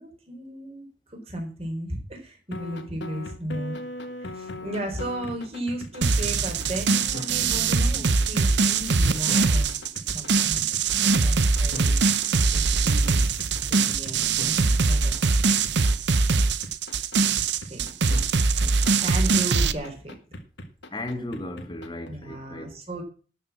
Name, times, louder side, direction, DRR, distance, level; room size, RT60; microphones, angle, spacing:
voice 1, 0.0-3.8 4.2-9.8 10.1-10.7 11.2-15.2 17.7-17.9 19.0-20.2 22.1-23.0, right 1 dB, 30° right, 3.9 m, -35 dB
sound 1, 2.5-18.2 18.6-22.1, left 1 dB, 70° left, 1.6 m, -39 dB
sound 2, 6.0-19.7, right 4 dB, 65° right, 0.8 m, -22 dB
voice 2, 18.6-19.0 20.9-22.7, left 1 dB, 25° left, 1.6 m, -36 dB
12.0 x 6.8 x 7.3 m
head